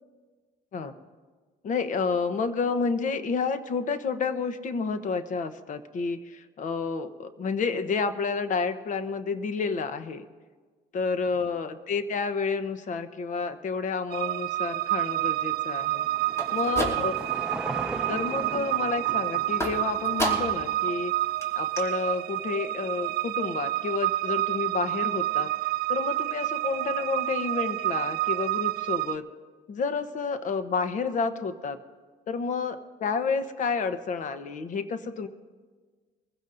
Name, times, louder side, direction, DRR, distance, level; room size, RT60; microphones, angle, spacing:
voice 1, 1.6-10.2 10.9-16.1 16.5-17.1 18.1-21.1 21.6-25.5 25.9-29.2 29.7-31.8 32.3-35.3, left 4 dB, 50° left, 10 dB, 1.0 m, -30 dB
sound 1, 14.1-29.2, right 15 dB, 65° right, 0.5 m, -29 dB
Car passing by / Engine, 15.1-21.5, right 2 dB, 5° right, 1.0 m, -39 dB
sound 2, 16.3-17.4 17.8-18.3 19.6-20.7 21.0-21.1 21.4-21.5 21.8-21.9, equal, 15° left, 2.8 m, -32 dB
23.5 x 15.5 x 2.6 m, 1.4 s
cardioid pair, 110°, 17 cm